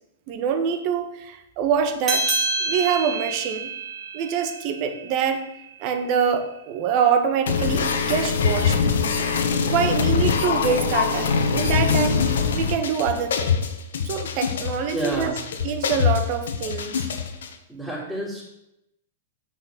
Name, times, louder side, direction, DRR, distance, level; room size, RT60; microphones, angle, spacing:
voice 1, 0.3-2.3 2.6-3.7 4.1-5.5 5.8-8.8 9.6-12.2 12.5-13.6 14.0-15.3 15.6-16.9, right 7 dB, 45° right, 7 dB, 1.4 m, -25 dB
sound 1, 2.0-6.9, right 2 dB, 20° right, 2.3 m, -29 dB
sound 2, 7.5-17.5, left 6 dB, 70° left, 1.2 m, -23 dB
voice 2, 14.9-15.4 17.7-18.5, right 1 dB, ahead, -9 dB, 3.5 m, -29 dB
7.5 x 6.3 x 7.4 m, 0.84 s
hypercardioid pair, 110°, 0 cm